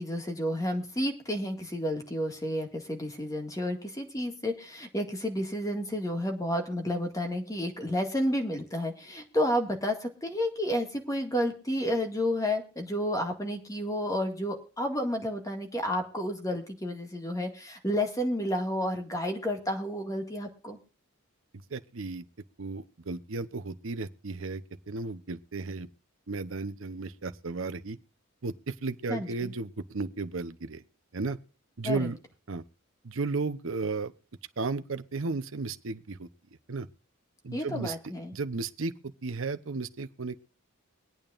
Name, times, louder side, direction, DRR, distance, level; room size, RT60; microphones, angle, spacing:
voice 1, 0.0-20.8 29.1-29.5 31.8-32.1 37.5-38.3, equal, 15° left, 1.9 m, -31 dB
voice 2, 21.7-22.2 22.6-24.6 24.9-25.9 26.3-28.0 28.4-30.8 31.1-31.4 31.8-32.2 32.5-32.6 33.0-34.1 34.6-36.3 36.7-36.9 37.4-38.0 38.3-40.4, right 3 dB, 65° right, 0.8 m, -34 dB
23.5 x 9.0 x 2.5 m
head